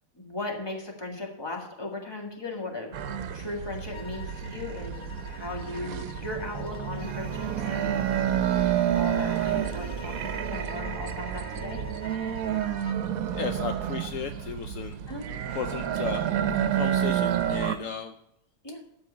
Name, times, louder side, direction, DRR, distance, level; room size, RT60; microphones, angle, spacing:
voice 1, 0.2-3.0 3.3-8.0 8.4-11.8 15.1-15.3 18.6-18.8, left 2 dB, 15° left, 0 dB, 1.9 m, -37 dB
sound 1, 2.9-17.8, right 10 dB, 80° right, 1.2 m, -29 dB
sound 2, 3.9-13.1, left 9 dB, 40° left, 1.0 m, -48 dB
sound 3, 7.0-12.0, right 5 dB, 30° right, 0.5 m, -40 dB
voice 2, 13.3-15.0 15.5-16.2 16.7-18.1, left 7 dB, 70° left, 8 dB, 1.0 m, -34 dB
12.5 x 4.5 x 8.6 m, 0.79 s
omnidirectional pair, 1.5 m